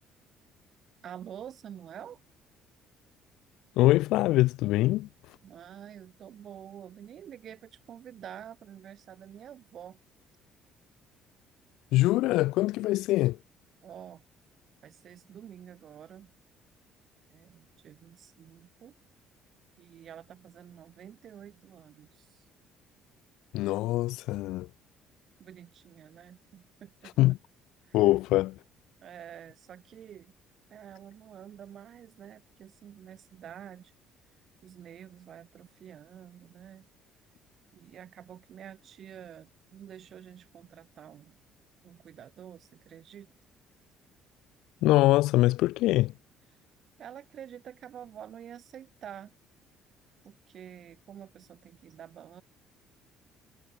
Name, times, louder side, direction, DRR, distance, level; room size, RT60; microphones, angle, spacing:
voice 1, 1.0-2.2 5.4-10.0 13.8-14.2 14.8-16.3 17.3-18.9 19.8-22.5 25.4-27.4 27.8-28.2 29.0-30.3 30.7-33.9 34.6-36.9 37.7-41.4 41.8-43.3 47.0-49.3 50.2-52.4, right 9 dB, 45° right, 1.9 m, -48 dB
voice 2, 3.8-5.1 11.9-13.4 23.5-24.7 27.2-27.4 27.9-28.6 44.8-46.1, left 17 dB, 80° left, 0.7 m, -23 dB
cardioid pair, 135°, 0 cm